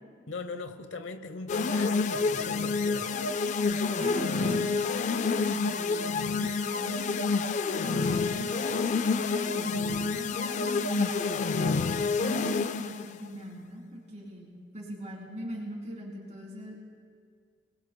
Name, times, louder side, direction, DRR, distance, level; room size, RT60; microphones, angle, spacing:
voice 1, 0.3-3.1, left 4 dB, 80° left, 9 dB, 0.8 m, -39 dB
sound 1, 1.5-13.1, left 4 dB, 40° left, 0.3 m, -28 dB
voice 2, 4.0-5.8 6.3-7.2 7.8-8.5 9.1-11.2 12.1-16.8, equal, 35° right, -2 dB, 3.2 m, -40 dB
26.5 x 20.0 x 2.2 m, 2.1 s
head